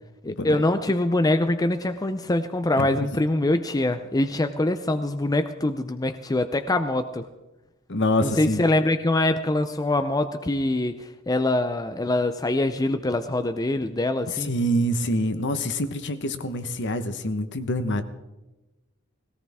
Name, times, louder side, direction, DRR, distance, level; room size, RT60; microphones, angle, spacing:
voice 1, 0.2-7.3 8.2-14.5, left 2 dB, 15° left, 9 dB, 0.5 m, -24 dB
voice 2, 7.9-8.6 14.4-18.0, equal, 55° left, 10 dB, 1.1 m, -26 dB
19.0 x 17.5 x 3.6 m, 1.0 s
head